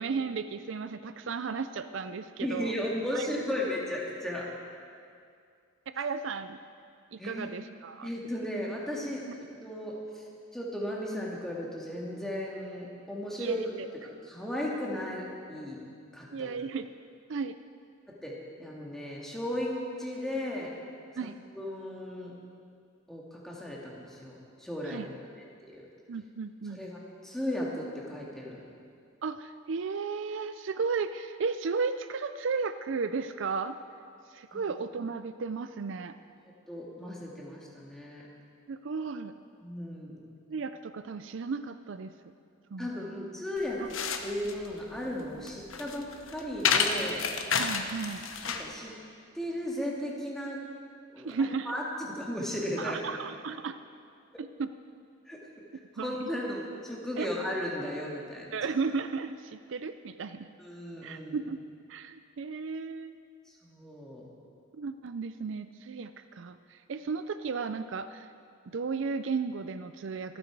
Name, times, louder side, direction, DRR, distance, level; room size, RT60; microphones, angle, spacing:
voice 1, 0.0-2.7 3.1-3.4 6.0-6.6 7.1-8.1 13.4-13.9 16.3-16.8 17.3-17.6 21.2-21.4 24.8-25.1 26.1-26.8 29.2-33.8 34.3-36.2 38.7-39.3 40.5-42.1 42.7-43.2 43.8-43.9 47.6-48.3 51.2-51.7 52.8-53.8 54.4-54.7 56.0-56.3 57.2-57.3 58.5-60.5 61.0-61.6 61.9-63.2 64.7-68.3 68.7-70.4, right 5 dB, 65° right, 10 dB, 0.4 m, -34 dB
voice 2, 2.4-4.5 7.2-7.5 8.0-9.2 9.5-10.2 10.5-13.6 14.3-15.8 16.1-16.5 18.1-19.7 20.0-20.7 21.5-22.3 23.1-25.1 25.4-25.5 25.7-25.9 26.7-28.6 34.5-34.6 36.7-38.2 39.6-40.2 42.8-43.8 44.2-47.2 48.6-48.9 49.3-50.6 51.1-51.3 51.7-53.1 55.3-55.4 56.0-58.5 60.6-61.4 63.6-64.2, left 1 dB, ahead, -4 dB, 2.0 m, -35 dB
sound 1, 43.6-48.7, left 6 dB, 75° left, 1.0 m, -30 dB
25.5 x 8.7 x 4.7 m, 2.3 s
head